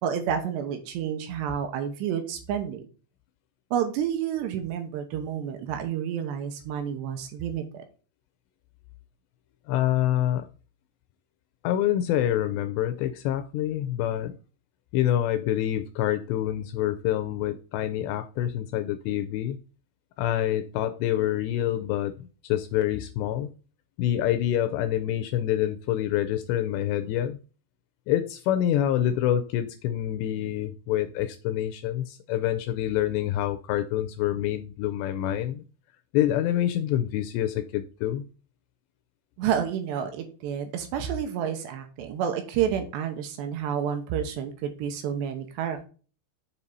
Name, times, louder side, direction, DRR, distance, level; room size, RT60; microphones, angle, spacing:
voice 1, 0.0-2.9 3.7-7.8 39.4-45.9, right 8 dB, 75° right, 6 dB, 3.0 m, -30 dB
voice 2, 9.7-10.5 11.6-14.3 14.9-19.6 20.2-23.5 24.0-27.4 28.1-35.6 36.1-38.2, left 12 dB, 85° left, 10 dB, 2.5 m, -26 dB
7.2 x 5.4 x 4.0 m, 0.36 s
omnidirectional pair, 5.4 m